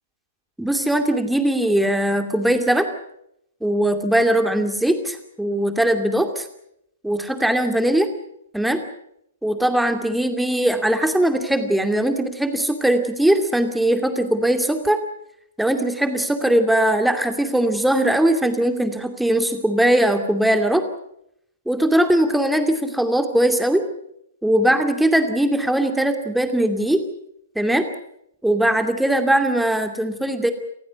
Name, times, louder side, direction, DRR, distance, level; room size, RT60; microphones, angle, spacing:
voice 1, 0.6-2.9 3.6-6.5 7.0-8.1 8.5-8.8 9.4-15.0 15.6-20.8 21.7-23.8 24.4-27.0 27.6-27.9 28.4-30.5, right 1 dB, ahead, 7 dB, 2.5 m, -20 dB
28.5 x 15.5 x 8.1 m, 0.77 s
figure-of-eight pair, 115°, 0 cm